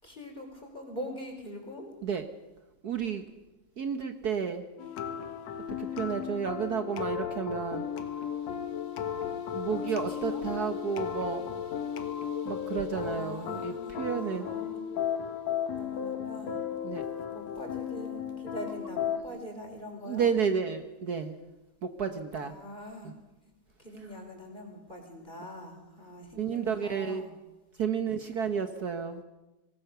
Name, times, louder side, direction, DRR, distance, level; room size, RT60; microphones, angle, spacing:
voice 1, 0.0-1.9 9.7-9.8 10.1-10.5 12.9-14.8 15.8-16.6 17.3-20.3 22.4-23.1 23.8-27.3, equal, 15° left, 2 dB, 4.9 m, -43 dB
voice 2, 2.8-3.4 3.8-4.6 5.7-7.8 9.5-11.6 12.4-14.5 16.8-17.0 20.0-21.4 21.8-22.5 23.0-23.1 26.4-27.2 27.8-29.2, right 6 dB, 85° right, 7 dB, 0.8 m, -31 dB
sound 1, 4.8-19.2, left 8 dB, 65° left, 2.5 m, -35 dB
26.0 x 19.0 x 6.9 m, 1.0 s
omnidirectional pair, 3.5 m